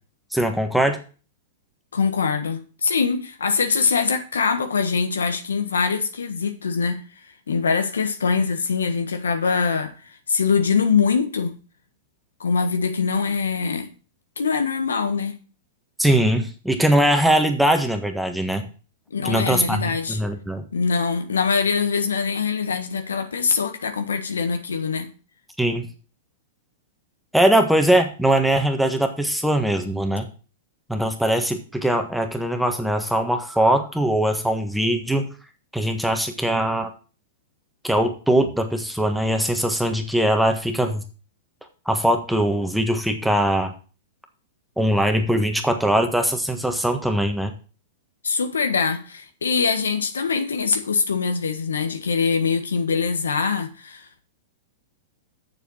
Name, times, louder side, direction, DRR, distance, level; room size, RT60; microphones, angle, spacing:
voice 1, 0.3-1.0 16.0-18.6 19.2-20.6 25.6-25.9 27.3-30.3 30.9-35.3 35.7-36.9 37.8-41.0 41.8-43.7 44.8-47.5, right 1 dB, ahead, 1.5 m, -21 dB
voice 2, 1.9-7.0 7.5-9.9 10.3-11.6 12.4-13.9 14.4-15.4 19.1-20.2 20.7-25.1 48.2-54.2, left 5 dB, 90° left, 1.4 m, -23 dB
7.0 x 6.8 x 6.4 m
hypercardioid pair, 120°, 0 cm